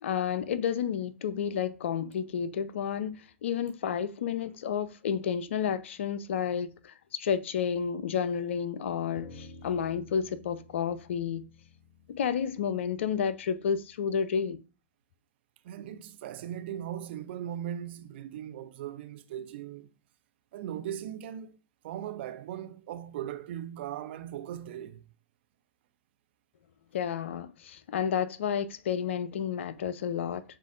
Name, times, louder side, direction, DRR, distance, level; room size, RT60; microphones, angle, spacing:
voice 1, 0.0-11.4 12.1-14.6 26.9-30.4, left 7 dB, 65° left, 0.4 m, -31 dB
sound 1, 9.1-13.7, left 2 dB, 30° left, 2.1 m, -52 dB
voice 2, 15.6-19.9 20.5-21.6 21.8-25.0, right 10 dB, 55° right, 0.4 m, -38 dB
7.1 x 2.5 x 2.4 m
figure-of-eight pair, 100°, 7 cm